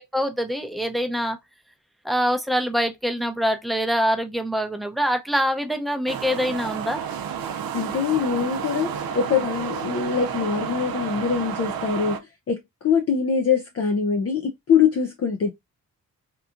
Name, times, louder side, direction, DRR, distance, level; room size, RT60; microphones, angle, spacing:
voice 1, 0.1-1.4 2.0-7.0, equal, ahead, 0.6 m, -24 dB
sound 1, 6.1-12.2, right 8 dB, 75° right, 0.5 m, -31 dB
voice 2, 7.7-12.2 12.5-15.5, left 6 dB, 45° left, 0.5 m, -23 dB
2.9 x 2.3 x 2.4 m
cardioid pair, 60°, 35 cm